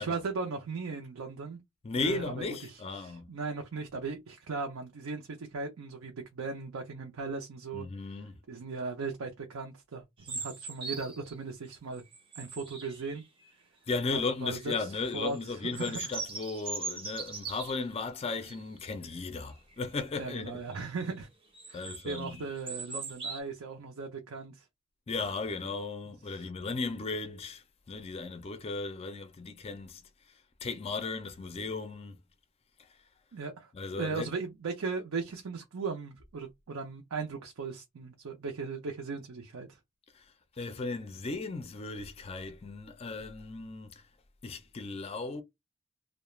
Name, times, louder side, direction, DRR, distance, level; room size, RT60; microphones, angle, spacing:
voice 1, 0.0-1.6 2.0-7.9 8.5-12.0 12.4-13.2 14.1-14.7 15.1-16.0 20.2-21.3 21.7-24.7 26.3-26.5 33.3-33.7 34.0-39.8, right 4 dB, 80° right, 0.5 m, -38 dB
voice 2, 1.8-3.3 7.7-8.4 13.9-20.6 21.7-22.4 25.1-30.3 30.6-32.2 32.8-33.0 33.7-34.3 40.1-44.0 44.4-45.4, left 3 dB, 30° left, 0.4 m, -36 dB
sound 1, 10.2-11.3 11.9-13.5 14.2-14.7 15.1-17.9 18.5-18.7 19.0-19.1 19.5-19.9 20.4-21.0 21.5-23.4, right 4 dB, 25° right, 0.6 m, -41 dB
2.3 x 2.1 x 3.0 m
head